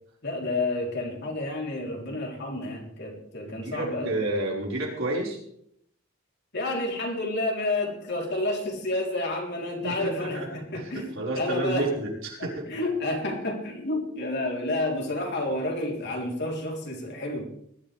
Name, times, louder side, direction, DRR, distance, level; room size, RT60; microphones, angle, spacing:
voice 1, 0.2-4.1 6.5-11.9 12.4-17.4, left 2 dB, 60° left, 0 dB, 3.6 m, -30 dB
voice 2, 3.5-5.4 9.8-12.7, right 2 dB, 75° right, -3 dB, 4.9 m, -31 dB
20.5 x 12.0 x 3.4 m, 0.69 s
head